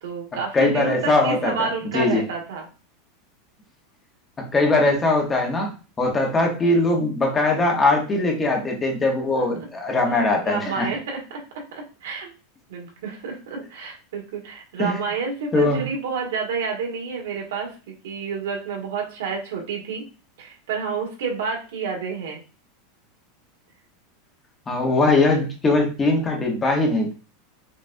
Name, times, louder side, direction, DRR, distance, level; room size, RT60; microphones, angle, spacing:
voice 1, 0.0-2.7 10.1-11.4 11.7-12.3 12.7-20.0 20.4-22.4, right 5 dB, 90° right, 1 dB, 1.5 m, -29 dB
voice 2, 0.5-2.2 4.4-5.7 6.0-10.9 14.8-15.0 15.5-15.9 24.7-27.1, left 2 dB, 15° left, 1 dB, 0.9 m, -21 dB
5.4 x 2.5 x 2.6 m, 0.33 s
supercardioid pair, 160°, 0 cm